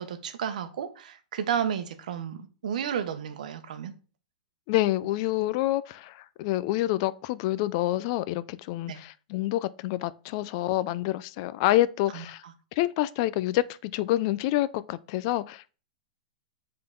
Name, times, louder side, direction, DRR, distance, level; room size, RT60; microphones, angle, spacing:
voice 1, 0.0-3.9 8.9-9.0 12.1-12.2, right 8 dB, 75° right, 0.8 m, -32 dB
voice 2, 4.7-12.4 12.7-15.7, left 15 dB, 45° left, 0.3 m, -27 dB
7.6 x 3.8 x 3.7 m
hypercardioid pair, 140°, 4 cm